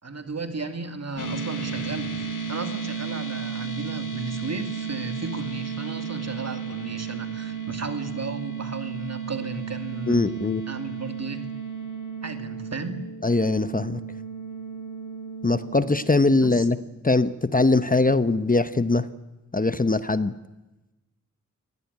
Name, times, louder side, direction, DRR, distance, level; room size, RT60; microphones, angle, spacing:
voice 1, 0.0-2.1 2.5-10.2 10.7-11.4 12.2-13.1 16.4-16.7, right 3 dB, 55° right, 7 dB, 2.7 m, -34 dB
sound 1, 1.2-16.7, right 6 dB, 85° left, 2.7 m, -34 dB
voice 2, 10.1-10.6 13.2-14.0 15.4-16.8 17.0-19.1 19.5-20.3, left 3 dB, 30° left, 13 dB, 1.0 m, -21 dB
24.5 x 18.0 x 9.7 m, 1.0 s
wide cardioid pair, 75°, 30 cm